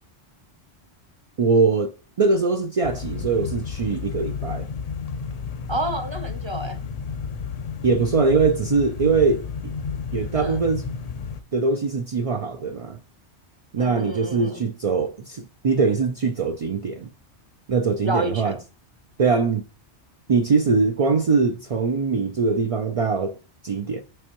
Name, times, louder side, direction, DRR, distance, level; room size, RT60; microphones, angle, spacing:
voice 1, 1.4-4.7 7.8-9.5 10.1-10.8 11.5-13.0 13.7-17.1 17.7-18.6 19.2-19.6 20.3-23.4 23.6-24.0, right 4 dB, 65° right, 0.3 m, -22 dB
sound 1, 2.8-11.4, left 6 dB, 55° left, 0.4 m, -32 dB
voice 2, 5.7-6.8 10.3-10.6 13.8-14.6 18.0-18.6, right 1 dB, 30° right, 0.6 m, -29 dB
7.8 x 4.3 x 2.9 m
omnidirectional pair, 1.2 m